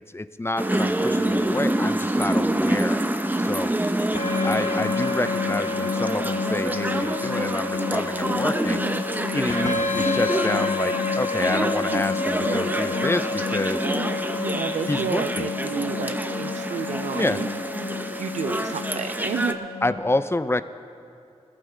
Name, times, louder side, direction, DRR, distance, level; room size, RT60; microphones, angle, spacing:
voice 1, 0.0-3.0 3.4-3.7 4.4-8.8 9.3-13.9 14.9-15.5 17.1-17.4 19.8-20.6, left 2 dB, 20° left, 12 dB, 0.5 m, -28 dB
sound 1, 0.6-19.5, right 1 dB, 15° right, 0.9 m, -27 dB
sound 2, 4.1-19.9, left 4 dB, 80° left, 1.2 m, -29 dB
voice 2, 14.4-17.5 18.2-19.6, right 6 dB, 85° right, 10 dB, 0.4 m, -31 dB
20.5 x 14.0 x 3.4 m, 2.6 s
cardioid pair, 50°, 12 cm